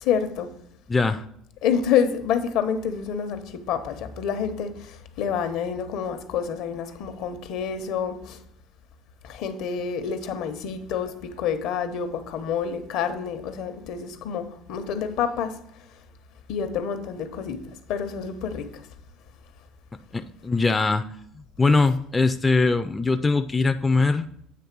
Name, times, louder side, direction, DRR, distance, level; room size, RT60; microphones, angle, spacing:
voice 1, 0.0-0.5 1.6-3.4 3.7-8.4 9.2-15.5 16.5-17.6 17.9-18.7, left 7 dB, 70° left, 0.9 m, -28 dB
voice 2, 0.9-1.3 20.1-21.1 21.6-24.3, left 3 dB, 15° left, 0.3 m, -21 dB
8.6 x 3.3 x 6.0 m
cardioid pair, 130°, 0 cm